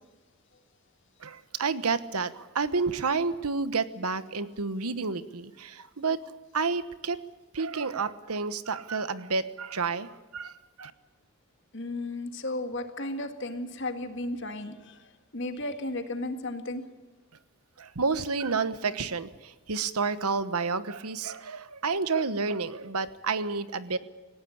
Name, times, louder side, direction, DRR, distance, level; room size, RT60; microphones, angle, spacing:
voice 1, 1.2-6.2 6.5-7.2 7.5-10.5 10.8-10.9 17.8-24.0, right 4 dB, 85° right, 13 dB, 1.1 m, -30 dB
voice 2, 11.7-15.1 15.3-16.9, left 2 dB, 55° left, 7 dB, 1.9 m, -34 dB
19.0 x 17.0 x 8.7 m, 1.2 s
head